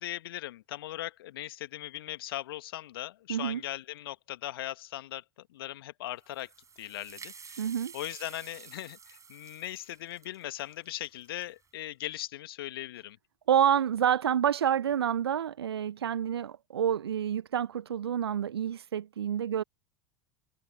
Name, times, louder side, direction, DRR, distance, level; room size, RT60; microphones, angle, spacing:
voice 1, 0.0-5.2 5.5-6.5 6.8-7.7 7.9-13.2, left 14 dB, 65° left, 1.9 m, -39 dB
voice 2, 3.3-3.6 7.6-7.9 13.5-19.6, right 9 dB, 75° right, 0.9 m, -28 dB
sound 1, 6.2-11.7, right 6 dB, 25° right, 8.0 m, -51 dB
figure-of-eight pair, 75°, 13 cm